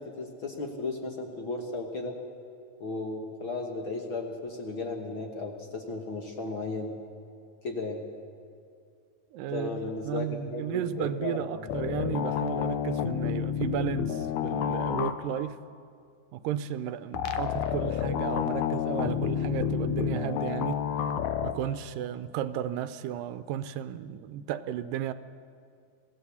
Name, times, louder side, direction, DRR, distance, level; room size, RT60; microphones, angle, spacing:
voice 1, 0.0-2.1 2.8-6.9 7.6-8.0 9.5-11.6, left 3 dB, 50° left, 2 dB, 1.6 m, -35 dB
voice 2, 9.3-15.6 16.3-20.8 21.4-25.1, right 10 dB, 80° right, 12 dB, 2.3 m, -34 dB
sound 1, 11.7-15.5 17.1-21.5, left 9 dB, 70° left, 1.9 m, -30 dB
25.5 x 16.5 x 7.1 m, 2.3 s
omnidirectional pair, 4.0 m